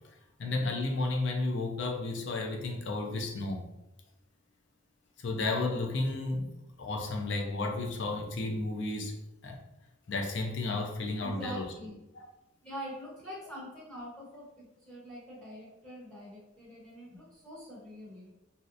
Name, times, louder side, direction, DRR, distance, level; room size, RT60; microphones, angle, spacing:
voice 1, 0.4-3.6 5.2-9.2 9.4-9.6 10.1-11.6 12.2-12.3, left 2 dB, 65° left, 2 dB, 0.5 m, -32 dB
voice 2, 11.2-12.0 12.6-18.3, equal, 10° left, -8 dB, 0.7 m, -44 dB
3.1 x 2.7 x 2.5 m, 0.91 s
head